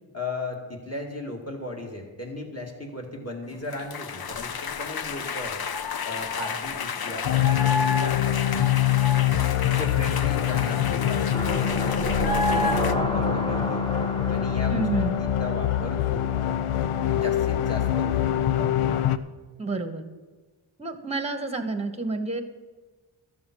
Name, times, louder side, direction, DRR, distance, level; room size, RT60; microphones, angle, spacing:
voice 1, 0.1-5.6 6.1-8.7 9.6-13.9 14.3-14.9 15.1-16.3 17.1-18.3, left 2 dB, 30° left, 0 dB, 2.4 m, -36 dB
sound 1, 3.7-12.9, left 4 dB, 50° left, 0.6 m, -30 dB
sound 2, 7.2-19.2, left 10 dB, 85° left, 0.6 m, -24 dB
sound 3, 11.3-16.2 16.6-16.7, equal, 10° left, 1.1 m, -32 dB
voice 2, 14.7-15.1 19.6-20.1 20.8-22.4, right 3 dB, 15° right, 7 dB, 1.1 m, -29 dB
13.5 x 7.3 x 6.2 m, 1.3 s
wide cardioid pair, 70°, 49 cm